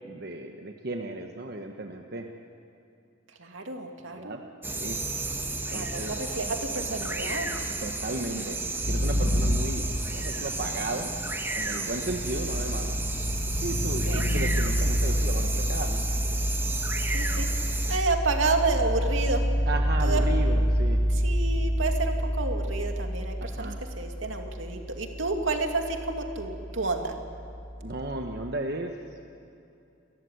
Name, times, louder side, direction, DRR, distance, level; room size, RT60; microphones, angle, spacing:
voice 1, 0.1-2.2 4.1-4.4 4.7-5.0 5.7-6.1 7.8-8.6 8.9-11.1 11.5-13.0 13.5-16.1 19.7-21.0 23.4-23.8 27.8-28.9, right 2 dB, 55° right, 3 dB, 1.3 m, -35 dB
voice 2, 3.4-4.4 5.7-7.5 8.3-8.5 14.1-14.2 17.1-17.5 17.9-19.4 20.0-20.2 21.1-23.7 24.0-27.1, right 3 dB, 80° right, 3 dB, 2.5 m, -30 dB
sound 1, 4.6-18.0, right 2 dB, 10° right, 1.4 m, -33 dB
sound 2, 8.8-10.6 11.6-28.5, equal, 40° left, 1.7 m, -28 dB
29.0 x 14.5 x 9.7 m, 2.6 s
head